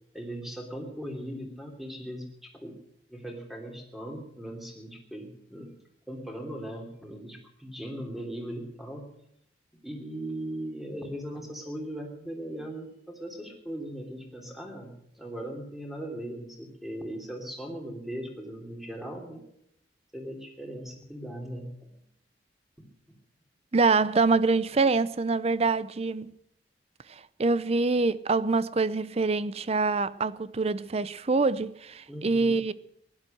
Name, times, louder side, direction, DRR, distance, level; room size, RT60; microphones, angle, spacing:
voice 1, 0.1-2.7 3.1-5.7 6.1-9.1 9.8-19.4 20.1-21.9 22.8-22.9 32.1-32.6, right 1 dB, ahead, 3.1 m, -39 dB
voice 2, 23.7-26.3 27.1-32.7, right 3 dB, 35° right, 0.5 m, -25 dB
16.0 x 11.5 x 7.8 m
head